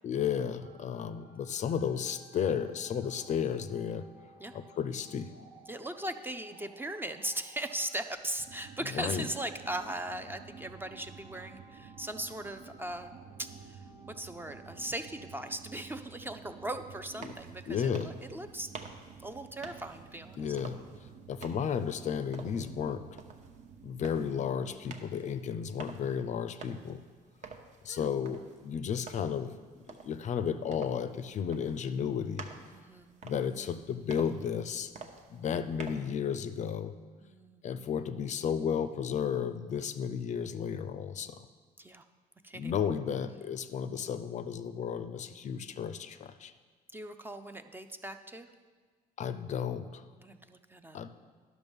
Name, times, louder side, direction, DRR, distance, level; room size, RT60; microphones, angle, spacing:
voice 1, 0.0-4.0 4.5-5.3 8.9-9.2 17.2-17.3 17.7-18.1 20.4-20.8 21.3-23.1 23.8-27.0 27.8-29.5 29.9-32.5 33.2-34.9 35.3-36.9 37.6-41.4 42.5-46.5 49.2-50.0 50.9-51.1, left 7 dB, 45° left, 11 dB, 0.4 m, -33 dB
sound 1, 0.6-15.6, right 1 dB, 90° right, 2.5 m, -58 dB
voice 2, 5.7-13.1 13.4-13.8 14.1-18.7 19.2-20.5 27.9-28.1 32.7-33.1 37.2-37.6 41.8-42.0 42.4-42.7 46.9-48.5 50.2-51.0, right 1 dB, 10° right, 8 dB, 0.5 m, -39 dB
sound 2, 8.5-24.5, right 7 dB, 65° right, 0.6 m, -52 dB
sound 3, 17.0-36.2, right 4 dB, 45° right, 0.9 m, -50 dB
10.5 x 6.1 x 5.3 m, 1.5 s
cardioid pair, 110°, 17 cm